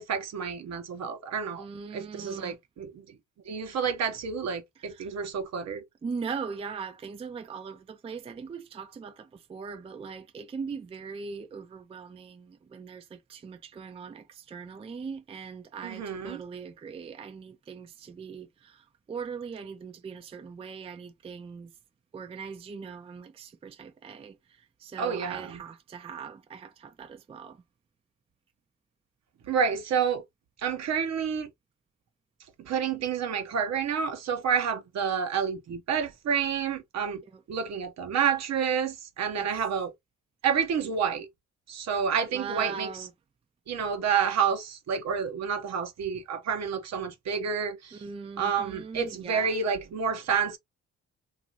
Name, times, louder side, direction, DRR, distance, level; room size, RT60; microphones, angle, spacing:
voice 1, 0.0-1.6 1.9-3.0 3.5-5.8 15.8-16.4 25.0-25.6 29.5-30.2 30.6-31.5 32.6-37.2 37.5-39.9 40.4-41.3 41.7-42.9 43.7-48.0 48.4-50.6, right 7 dB, 60° right, 0.8 m, -29 dB
voice 2, 1.6-2.6 4.8-5.1 6.0-21.7 22.1-24.4 24.8-27.6 37.3-37.4 39.3-39.5 42.3-43.1 47.9-49.6, right 5 dB, 20° right, 0.4 m, -40 dB
2.9 x 2.5 x 2.7 m
cardioid pair, 90°, 30 cm